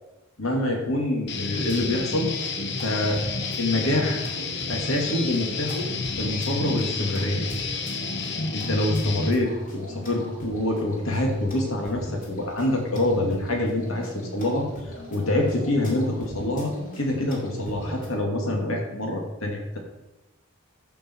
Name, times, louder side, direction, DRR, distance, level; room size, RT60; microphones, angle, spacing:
voice 1, 0.4-2.3 2.8-3.2 3.6-4.2 4.7-5.9 6.2-7.4 8.5-19.8, left 1 dB, 85° left, 1 dB, 2.1 m, -26 dB
Guitar, 1.3-9.3, left 4 dB, 55° left, 1.1 m, -30 dB
sound 1, 1.5-18.1, equal, 40° left, 2.5 m, -40 dB
13.5 x 5.3 x 4.5 m, 1.0 s
head